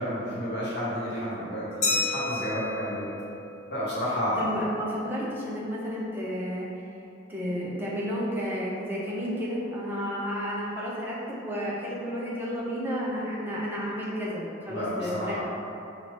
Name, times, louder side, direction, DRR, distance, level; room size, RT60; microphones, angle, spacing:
voice 1, 0.0-3.0 3.7-4.7 14.7-15.4, equal, 55° left, -8 dB, 1.1 m, -31 dB
Glass, 1.8-4.3, left 3 dB, 35° left, 1.3 m, -31 dB
voice 2, 4.4-6.8 7.3-15.4, equal, 10° right, -6 dB, 0.6 m, -32 dB
4.8 x 2.6 x 3.2 m, 2.8 s
head